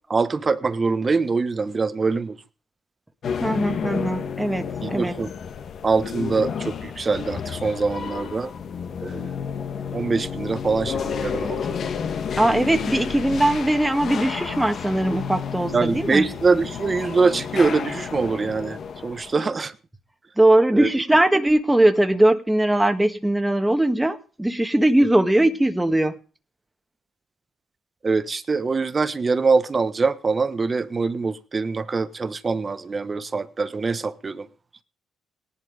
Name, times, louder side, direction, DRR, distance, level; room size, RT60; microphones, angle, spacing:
voice 1, 0.1-2.4 4.8-5.3 5.8-8.5 9.0-9.3 9.9-11.8 15.7-19.7 20.7-21.2 28.0-34.5, right 4 dB, 30° right, 1.3 m, -24 dB
sound 1, 3.2-19.3, left 7 dB, 55° left, 1.6 m, -31 dB
voice 2, 3.4-5.1 12.4-16.2 20.4-26.2, right 1 dB, 10° right, 1.7 m, -20 dB
18.0 x 11.5 x 5.1 m
cardioid pair, 90°, 0 cm